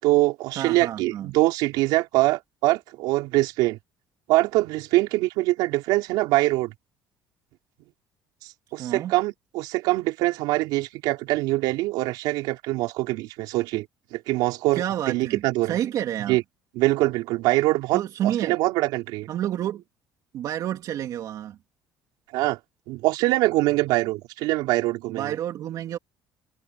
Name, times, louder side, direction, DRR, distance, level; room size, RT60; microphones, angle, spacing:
voice 1, 0.0-3.8 4.3-6.7 8.4-13.9 14.1-15.8 16.3-16.4 16.7-19.3 22.3-22.6 22.9-25.4, right 19 dB, 85° right, 4.4 m, -23 dB
voice 2, 0.5-1.3 8.8-9.2 14.7-16.4 17.9-18.6 19.3-19.8 20.3-21.6 25.1-26.0, right 11 dB, 60° right, 2.7 m, -29 dB
cardioid pair, 110°, 7 cm